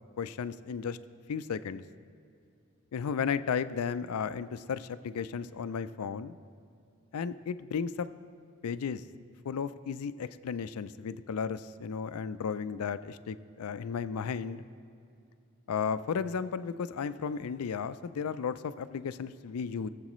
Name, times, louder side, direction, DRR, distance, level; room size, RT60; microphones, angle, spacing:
voice 1, 0.2-1.0 1.3-1.8 2.9-6.3 7.1-8.1 8.6-9.0 9.4-14.6 15.7-19.9, left 6 dB, 90° left, 14 dB, 0.4 m, -34 dB
21.0 x 7.5 x 3.1 m, 2.6 s
head